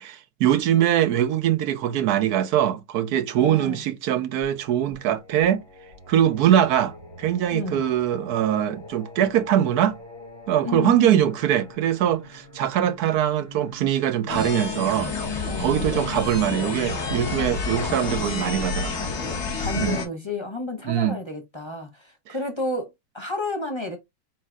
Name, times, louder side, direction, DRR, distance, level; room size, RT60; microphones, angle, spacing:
voice 1, 0.0-5.6 6.1-10.0 10.5-15.1 15.6-19.1 19.8-20.0 20.9-21.1 22.3-22.4, right 10 dB, 70° right, 1.1 m, -22 dB
voice 2, 3.4-3.8 7.5-7.9 10.6-11.3 15.5-16.1 19.6-24.0, left 2 dB, 25° left, 0.6 m, -31 dB
Singing, 4.4-19.1, left 1 dB, 45° right, 3.4 m, -45 dB
sound 1, 14.3-20.1, left 4 dB, 45° left, 1.4 m, -29 dB
4.6 x 4.1 x 2.3 m
omnidirectional pair, 1.9 m